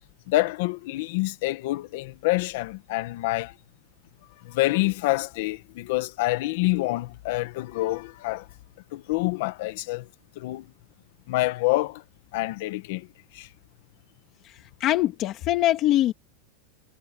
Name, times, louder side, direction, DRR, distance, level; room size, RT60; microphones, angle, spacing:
voice 1, 0.3-3.5 4.4-8.4 8.9-10.1 10.4-10.7 11.3-12.0 12.3-13.1 13.3-13.5, left 19 dB, 50° left, 1.4 m, -27 dB
voice 2, 14.8-16.1, left 14 dB, 30° left, 2.3 m, -22 dB
supercardioid pair, 180°, 0 cm